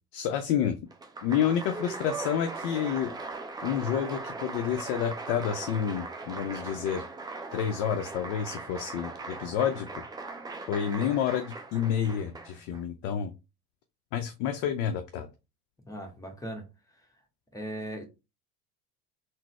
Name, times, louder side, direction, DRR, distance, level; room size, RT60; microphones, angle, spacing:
voice 1, 0.1-0.8 1.2-3.2 3.6-7.1 7.5-10.0 10.7-13.3 14.1-15.3, left 9 dB, 50° left, 0.5 m, -29 dB
Applause, 0.9-12.8, right 3 dB, 10° right, 0.4 m, -39 dB
voice 2, 15.9-16.7 17.5-18.0, right 1 dB, 5° left, 1.0 m, -38 dB
3.9 x 2.0 x 3.0 m
figure-of-eight pair, 65°, 46 cm